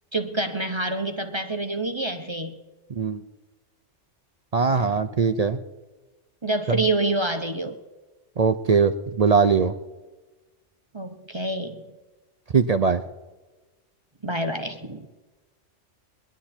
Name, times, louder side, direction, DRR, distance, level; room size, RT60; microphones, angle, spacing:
voice 1, 0.1-2.5 4.7-4.9 6.4-7.8 10.9-11.8 14.2-15.1, right 2 dB, 25° right, 6 dB, 0.9 m, -27 dB
voice 2, 4.5-5.6 8.4-9.7 12.5-13.0, right 5 dB, 50° right, 10 dB, 0.5 m, -20 dB
21.0 x 11.5 x 4.4 m, 1.2 s
omnidirectional pair, 1.3 m